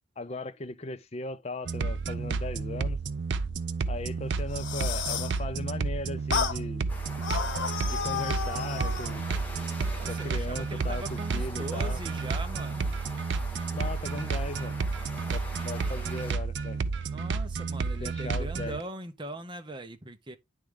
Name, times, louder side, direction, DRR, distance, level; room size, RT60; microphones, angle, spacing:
voice 1, 0.2-3.0 3.9-6.9 7.9-9.3 10.1-12.0 13.7-14.8 15.3-16.8 18.0-18.8, left 2 dB, 30° left, 0.5 m, -38 dB
sound 1, 1.6-18.8, right 4 dB, 65° right, 0.5 m, -31 dB
sound 2, 4.4-5.4 6.3-6.6 7.2-9.2, left 6 dB, 75° left, 0.8 m, -32 dB
sound 3, 6.9-16.3, left 1 dB, 10° left, 1.3 m, -44 dB
voice 2, 9.9-12.9 17.1-20.4, right 1 dB, 25° right, 0.8 m, -40 dB
10.0 x 3.6 x 3.3 m
head